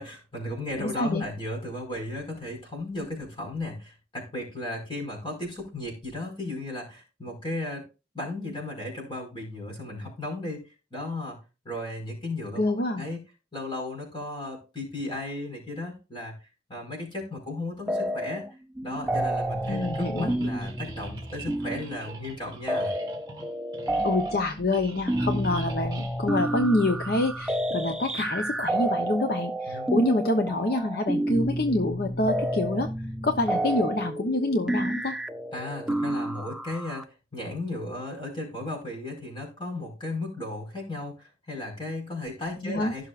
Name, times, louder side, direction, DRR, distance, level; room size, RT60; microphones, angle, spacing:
voice 1, 0.0-7.9 8.1-10.6 10.9-11.4 11.7-13.2 13.5-16.3 16.7-18.5 18.8-22.9 29.7-29.9 35.5-43.1, left 2 dB, 25° left, 0 dB, 5.1 m, -35 dB
voice 2, 0.8-1.2 12.6-13.1 19.7-20.3 24.0-32.9 33.2-35.2 42.6-42.9, left 2 dB, 55° left, 5 dB, 0.8 m, -26 dB
sound 1, 17.9-18.5 18.8-37.0, right 1 dB, 5° right, 0.4 m, -30 dB
sound 2, 19.6-27.1, right 3 dB, 20° right, 1.9 m, -45 dB
16.0 x 6.4 x 2.5 m, 0.30 s
head